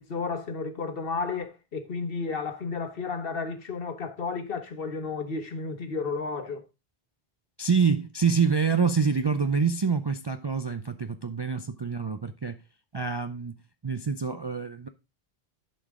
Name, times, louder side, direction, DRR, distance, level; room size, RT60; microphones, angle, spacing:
voice 1, 0.0-6.6, left 4 dB, 65° left, 1.3 m, -32 dB
voice 2, 7.6-12.6 12.9-13.6 13.8-14.9, right 5 dB, 40° right, 0.4 m, -26 dB
11.0 x 5.3 x 3.6 m
omnidirectional pair, 1.0 m